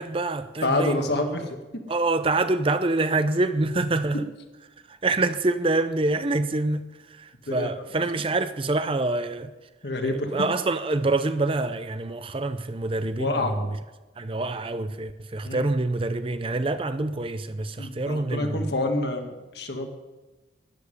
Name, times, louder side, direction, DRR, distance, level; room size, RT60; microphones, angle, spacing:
voice 1, 0.0-1.1 1.9-4.3 4.9-9.5 10.0-13.7 14.2-18.7, right 2 dB, 30° right, 0.5 m, -26 dB
voice 2, 0.6-1.6 7.5-7.7 9.8-10.5 13.2-13.5 15.4-15.7 17.8-19.9, left 2 dB, 60° left, 1.8 m, -27 dB
13.5 x 7.2 x 9.8 m
head